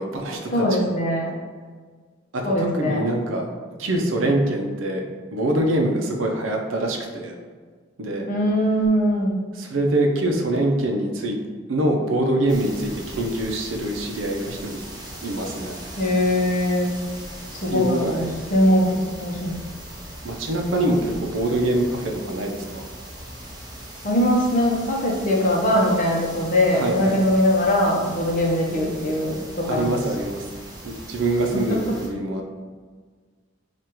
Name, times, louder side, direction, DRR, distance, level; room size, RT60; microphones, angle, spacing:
voice 1, 0.0-0.8 2.3-3.5 3.8-7.4 8.0-8.3 9.5-11.4 11.7-14.9 15.2-15.8 17.7-18.4 20.2-22.9 26.7-27.2 29.7-30.5 30.8-32.6, right 1 dB, 75° right, 1 dB, 0.6 m, -24 dB
voice 2, 0.5-1.3 2.4-3.0 8.3-9.3 16.0-16.9 17.5-18.2 18.5-19.6 24.0-29.9 31.5-31.6, equal, 40° left, -1 dB, 0.7 m, -21 dB
sound 1, 12.5-32.1, right 1 dB, 20° right, 0.8 m, -39 dB
4.8 x 2.4 x 2.9 m, 1.5 s
head